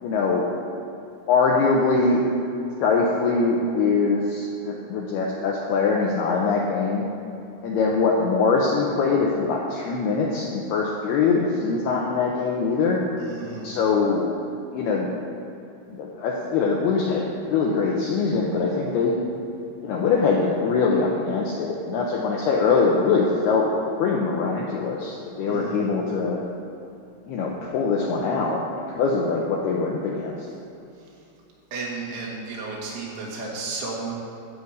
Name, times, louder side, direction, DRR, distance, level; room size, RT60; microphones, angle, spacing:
voice 1, 0.0-0.5 1.3-2.2 2.8-7.0 7.6-13.1 13.6-14.3 14.7-15.2 15.9-17.2 17.5-19.2 19.8-23.7 24.0-26.4 27.3-28.6 28.9-30.4, left 4 dB, 80° left, -2 dB, 2.3 m, -23 dB
voice 2, 13.2-13.7 25.5-25.9 31.7-34.1, right 3 dB, 70° right, -4 dB, 4.5 m, -33 dB
13.5 x 5.2 x 8.1 m, 2.7 s
omnidirectional pair, 5.7 m